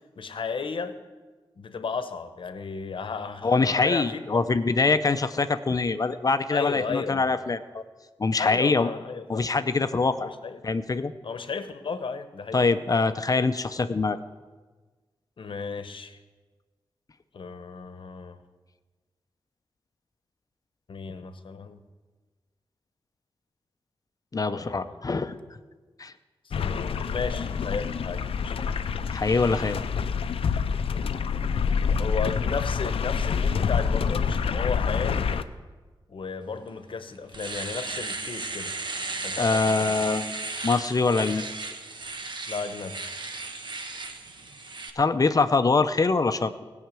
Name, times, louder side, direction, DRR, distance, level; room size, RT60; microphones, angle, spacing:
voice 1, 0.2-1.0 1.6-4.2 4.6-4.7 6.5-7.2 8.4-9.4 10.2-10.6 11.2-12.7 15.4-16.2 17.3-18.4 20.9-21.8 24.5-25.0 26.4-28.5 32.0-35.3 36.1-38.7 39.2-39.9 42.5-43.0, left 5 dB, 65° left, 10 dB, 1.0 m, -34 dB
voice 2, 3.4-7.8 8.2-8.9 9.3-10.3 10.6-11.1 12.5-14.2 24.3-25.4 26.0-26.1 29.1-29.8 39.4-40.3 40.6-41.4 45.0-46.6, left 3 dB, 40° left, 11 dB, 0.6 m, -24 dB
sound 1, 26.5-35.4, left 6 dB, 90° left, 0.5 m, -27 dB
Domestic sounds home sounds, 36.7-36.8 37.2-44.9, right 3 dB, 55° right, 1.1 m, -35 dB
16.0 x 5.8 x 9.0 m, 1.3 s
wide cardioid pair, 85°, 9 cm